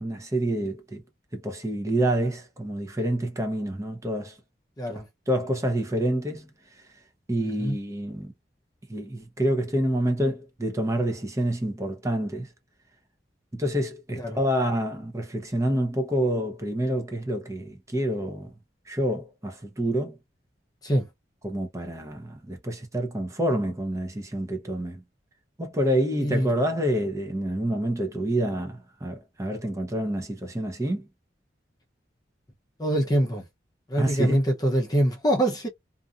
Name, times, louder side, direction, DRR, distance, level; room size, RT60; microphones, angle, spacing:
voice 1, 0.0-1.0 1.3-4.4 5.3-6.5 7.3-8.3 8.9-12.5 13.5-18.5 18.9-20.2 21.4-25.0 25.6-31.1 34.0-34.4, right 1 dB, 20° right, 0.7 m, -27 dB
voice 2, 7.4-7.8 14.2-14.4 20.8-21.1 26.2-26.5 32.8-33.4 33.9-35.7, equal, 20° left, 0.6 m, -24 dB
2.6 x 2.4 x 2.4 m
head